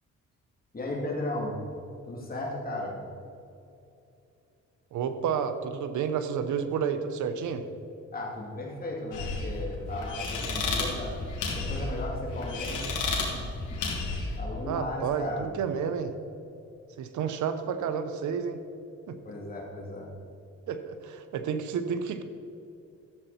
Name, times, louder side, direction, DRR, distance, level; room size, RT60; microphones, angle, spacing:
voice 1, 0.7-1.6 2.0-3.0 8.1-11.2 11.5-14.0 14.4-15.5 19.2-20.1, left 1 dB, 30° left, -2 dB, 2.8 m, -36 dB
voice 2, 4.9-7.6 14.7-16.1 17.0-18.6 19.1-19.2 20.7-22.2, right 7 dB, 75° right, 9 dB, 0.9 m, -30 dB
sound 1, 9.1-14.4, left 3 dB, 85° left, 2.7 m, -32 dB
13.5 x 7.9 x 4.3 m, 2.7 s
cardioid pair, 90°, 30 cm